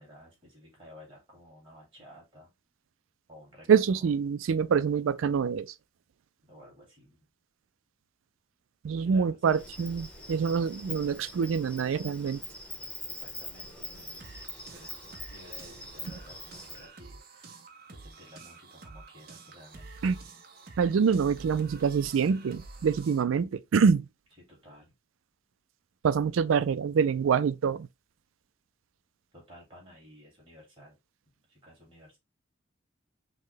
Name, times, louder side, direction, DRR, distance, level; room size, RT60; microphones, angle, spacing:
voice 1, 0.0-2.5 3.3-4.1 6.4-7.3 9.0-9.7 13.1-14.4 14.7-17.6 17.9-20.0 24.4-24.9 29.3-31.0 31.5-32.2, left 1 dB, 25° right, 2.3 m, -53 dB
voice 2, 3.7-5.7 8.8-12.4 20.0-20.2 20.8-24.0 26.0-27.9, right 6 dB, 85° right, 0.4 m, -25 dB
Insect, 9.5-16.9, left 1 dB, 5° left, 0.9 m, -43 dB
sound 1, 13.9-23.2, right 3 dB, 50° right, 0.7 m, -49 dB
5.4 x 2.2 x 3.2 m
head